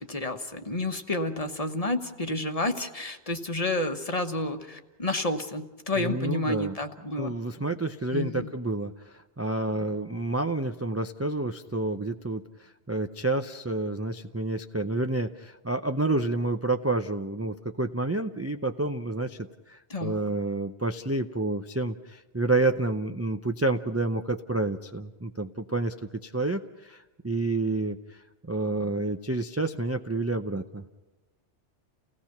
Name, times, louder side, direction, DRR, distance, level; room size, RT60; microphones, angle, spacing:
voice 1, 0.1-7.4 8.1-8.5 19.9-20.2, left 2 dB, 30° left, 6 dB, 1.3 m, -30 dB
voice 2, 6.0-6.8 7.2-25.9 26.2-28.2 28.4-30.8, right 2 dB, 20° right, 6 dB, 0.4 m, -29 dB
30.0 x 17.5 x 5.9 m, 1.1 s
omnidirectional pair, 1.2 m